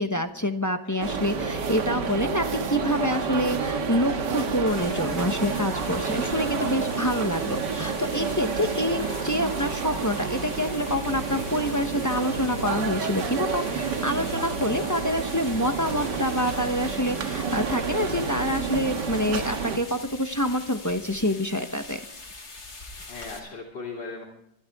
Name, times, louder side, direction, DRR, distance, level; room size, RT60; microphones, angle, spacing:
voice 1, 0.0-22.0, equal, 15° left, 7 dB, 0.7 m, -27 dB
voice 2, 0.9-1.2 14.6-14.9 23.1-24.2, left 4 dB, 75° left, -2 dB, 3.6 m, -39 dB
sound 1, 1.0-19.8, right 5 dB, 75° right, 2.1 m, -30 dB
sound 2, 4.7-23.4, left 3 dB, 60° left, 3.4 m, -43 dB
25.5 x 12.0 x 3.6 m, 0.77 s
omnidirectional pair, 1.9 m